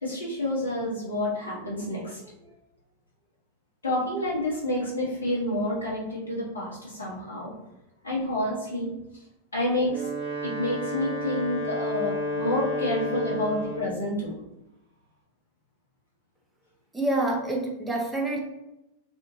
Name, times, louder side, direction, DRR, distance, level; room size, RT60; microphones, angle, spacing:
voice 1, 0.0-2.3 3.8-7.5 8.0-8.9 9.5-10.1 10.4-14.3, left 1 dB, 75° left, -5 dB, 0.9 m, -29 dB
Wind instrument woodwind instrument, 9.7-14.0, left 1 dB, 45° right, 1.2 m, -31 dB
voice 2, 16.9-18.4, right 2 dB, 10° right, -1 dB, 0.6 m, -27 dB
2.7 x 2.5 x 2.6 m, 0.90 s
figure-of-eight pair, 90°, 0 cm